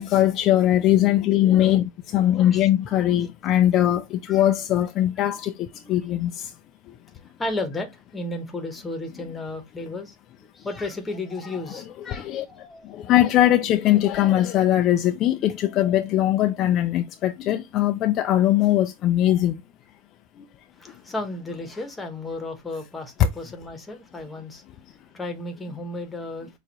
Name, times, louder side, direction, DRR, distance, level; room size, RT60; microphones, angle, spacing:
voice 1, 0.0-4.0 4.3-5.5 5.9-6.3 12.1-12.4 13.1-19.5, left 13 dB, 40° left, 0.4 m, -20 dB
voice 2, 2.4-2.7 3.2-3.3 4.3-4.5 5.3-5.4 5.7-6.2 7.4-10.1 10.5-13.0 20.8-24.6 25.1-26.5, left 2 dB, 10° left, 1.1 m, -34 dB
6.6 x 2.5 x 3.0 m
supercardioid pair, 140°, 0 cm